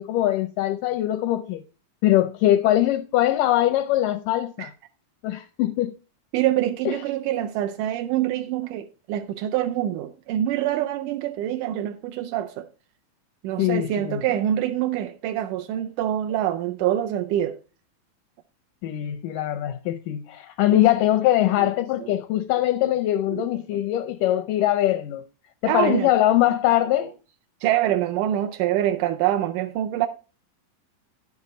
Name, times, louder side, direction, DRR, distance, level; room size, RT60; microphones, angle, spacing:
voice 1, 0.0-1.6 2.0-4.7 5.2-5.9 6.9-7.0 13.6-14.2 18.8-25.2 25.6-27.1, left 13 dB, 80° left, 1.9 m, -22 dB
voice 2, 6.3-12.7 13.4-17.6 20.7-20.8 21.6-21.7 22.0-22.1 23.3-23.5 25.7-26.1 27.6-30.1, right 12 dB, 80° right, 1.8 m, -25 dB
11.0 x 7.3 x 4.1 m
omnidirectional pair, 4.2 m